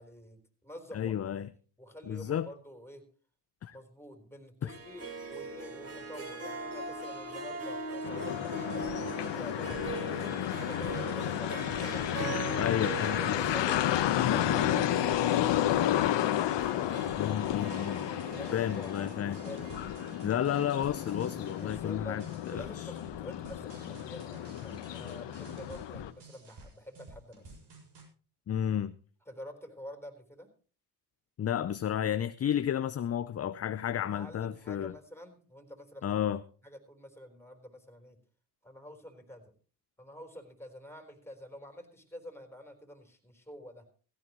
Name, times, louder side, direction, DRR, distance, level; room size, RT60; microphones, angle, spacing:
voice 1, 0.0-1.2 1.8-3.0 3.7-8.9 9.2-12.2 13.2-17.0 18.4-19.8 21.6-22.2 22.5-27.5 29.3-30.5 34.0-36.2 36.6-38.2 38.6-39.5 40.0-43.9, equal, 5° left, 3.9 m, -48 dB
voice 2, 0.9-1.5 2.1-2.5 3.6-3.8 4.6-4.7 12.6-13.4 17.2-18.2 18.5-19.4 20.2-22.9 28.5-29.0 31.4-34.9 36.0-36.4, left 10 dB, 30° left, 0.6 m, -32 dB
Harp, 4.7-21.5, right 2 dB, 30° right, 3.8 m, -41 dB
sound 1, 8.0-26.1, left 12 dB, 60° left, 1.2 m, -32 dB
sound 2, 8.3-28.0, right 2 dB, 55° right, 6.2 m, -51 dB
16.5 x 14.5 x 3.1 m
supercardioid pair, 70°, 47 cm